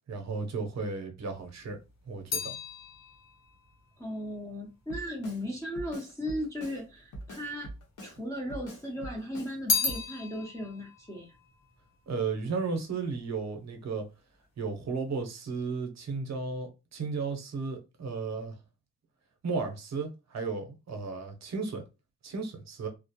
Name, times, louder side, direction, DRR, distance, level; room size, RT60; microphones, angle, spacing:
voice 1, 0.1-1.8 2.1-2.5 12.1-14.1 14.6-18.6 19.4-21.8 22.2-22.9, right 4 dB, 60° right, 0.7 m, -34 dB
sound 1, 1.3-5.8 6.5-7.3 7.6-8.8 9.1-12.6 12.9-13.4, left 4 dB, 60° left, 0.8 m, -35 dB
voice 2, 4.0-7.7 8.0-11.4, equal, 10° left, 0.5 m, -36 dB
Drum kit, 4.9-5.4 5.8-6.8 7.1-8.2 8.5-9.5 9.9-10.0, right 1 dB, 90° left, 0.9 m, -43 dB
2.4 x 2.1 x 2.7 m
wide cardioid pair, 140°, 31 cm